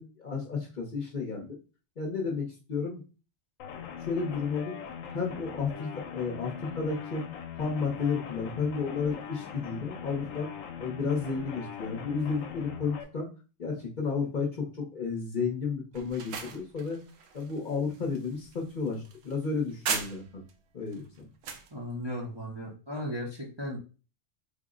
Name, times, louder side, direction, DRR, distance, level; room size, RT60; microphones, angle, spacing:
voice 1, 0.0-1.6 2.0-3.0 4.0-4.8 5.1-7.2 7.5-10.5 10.8-13.3 13.6-17.0 17.3-20.4 20.7-21.3, left 5 dB, 45° left, -1 dB, 0.8 m, -32 dB
sound 1, 3.6-13.0, left 7 dB, 90° left, 1.0 m, -41 dB
sound 2, 15.9-20.5 20.9-21.7, right 6 dB, 65° right, 0.8 m, -38 dB
voice 2, 21.7-23.8, equal, 30° right, -3 dB, 0.5 m, -36 dB
3.7 x 2.0 x 3.6 m, 0.34 s
omnidirectional pair, 1.3 m